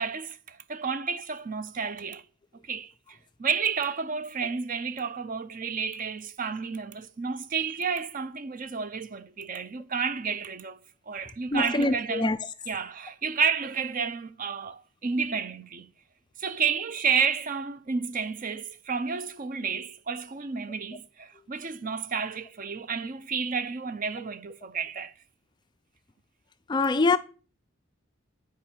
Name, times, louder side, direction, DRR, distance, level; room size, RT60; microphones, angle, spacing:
voice 1, 0.0-2.2 2.6-10.8 11.1-12.3 12.7-15.9 16.4-25.1, right 6 dB, 40° right, 0.5 m, -31 dB
voice 2, 11.5-12.4 26.7-27.2, left 3 dB, 20° left, 0.3 m, -24 dB
8.8 x 5.1 x 4.4 m
head